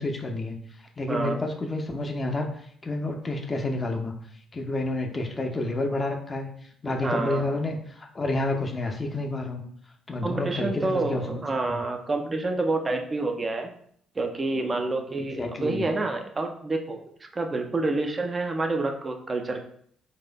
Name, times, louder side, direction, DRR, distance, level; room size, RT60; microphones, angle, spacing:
voice 1, 0.0-4.1 4.5-9.6 10.1-11.8 15.2-15.9, left 2 dB, 30° left, 3 dB, 0.6 m, -30 dB
voice 2, 1.1-1.4 6.8-7.4 10.2-13.7 14.2-17.0 17.3-19.6, right 2 dB, 30° right, 4 dB, 0.5 m, -28 dB
4.1 x 2.5 x 2.2 m, 0.64 s
figure-of-eight pair, 45°, 0 cm